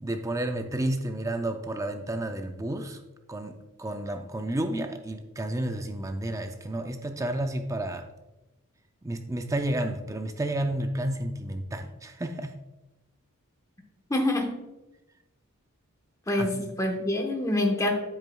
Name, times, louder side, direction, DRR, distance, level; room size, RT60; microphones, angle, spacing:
voice 1, 0.0-3.0 3.3-8.1 9.0-12.6 16.4-16.6, right 1 dB, 15° right, 6 dB, 0.4 m, -31 dB
voice 2, 14.1-14.6 16.3-17.9, left 1 dB, 15° left, 3 dB, 1.0 m, -26 dB
9.6 x 8.2 x 2.2 m, 1.0 s
head